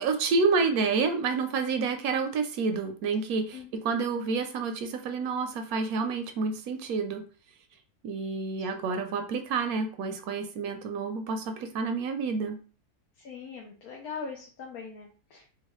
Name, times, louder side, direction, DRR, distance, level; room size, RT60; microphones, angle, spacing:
voice 1, 0.0-7.2 8.0-12.6, right 4 dB, 75° right, 7 dB, 1.0 m, -29 dB
voice 2, 13.2-15.4, left 5 dB, 75° left, 0 dB, 1.2 m, -41 dB
3.9 x 2.3 x 3.0 m, 0.38 s
omnidirectional pair, 1.6 m